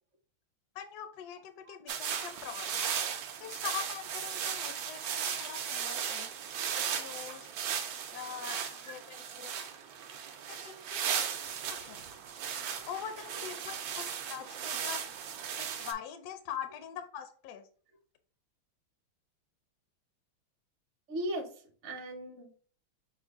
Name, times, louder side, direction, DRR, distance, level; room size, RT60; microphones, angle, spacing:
voice 1, 0.7-2.9 3.4-6.3 6.7-7.5 8.1-9.5 10.5-11.0 11.7-12.1 12.9-15.0 15.6-17.7, left 9 dB, 75° left, 8 dB, 0.9 m, -43 dB
sound 1, 1.9-15.9, right 8 dB, 75° right, 1.1 m, -36 dB
voice 2, 21.1-22.6, right 1 dB, 50° right, 1 dB, 0.8 m, -38 dB
6.1 x 2.2 x 3.5 m, 0.43 s
omnidirectional pair, 2.3 m